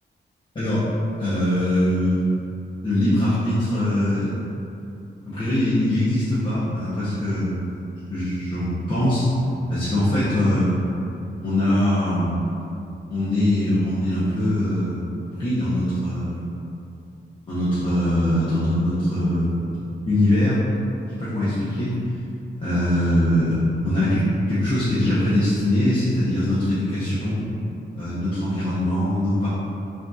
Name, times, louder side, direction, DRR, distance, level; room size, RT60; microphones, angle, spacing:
voice 1, 0.5-0.9 1.2-2.3 2.8-4.3 5.3-7.6 8.1-9.3 9.7-10.7 11.4-12.4 13.1-15.1 15.3-16.4 17.5-19.8 20.0-20.6 21.2-21.9 22.6-27.5 27.9-29.5, left 1 dB, 25° left, -12 dB, 0.8 m, -22 dB
5.8 x 2.7 x 2.3 m, 2.7 s
wide cardioid pair, 165°, 19 cm